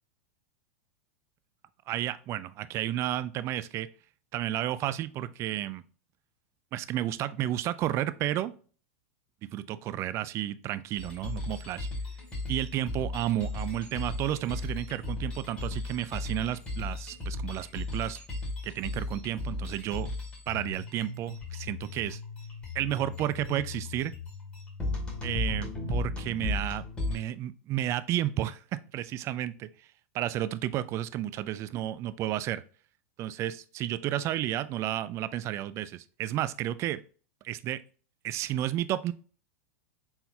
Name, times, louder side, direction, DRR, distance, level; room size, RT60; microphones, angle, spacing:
voice 1, 1.9-3.9 4.3-5.8 6.7-8.5 9.5-11.9 12.5-18.2 18.6-20.1 20.5-22.2 22.7-24.1 25.2-29.7 30.1-32.6 33.2-37.0 37.4-37.8 38.2-39.1, right 13 dB, 40° right, 0.4 m, -32 dB
sound 1, 11.0-27.2, left 2 dB, 15° left, 2.2 m, -36 dB
4.3 x 3.8 x 2.8 m
hypercardioid pair, 115°, 8 cm